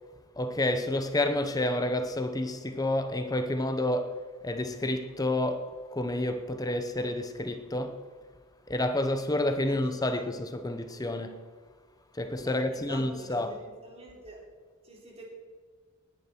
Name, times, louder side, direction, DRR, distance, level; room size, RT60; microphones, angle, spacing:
voice 1, 0.4-8.0 8.7-11.4 12.2-13.6, left 1 dB, 15° left, 0.9 m, -29 dB
voice 2, 12.4-14.4 14.8-15.2, right 1 dB, 30° right, 3.8 m, -46 dB
19.0 x 10.5 x 4.5 m
head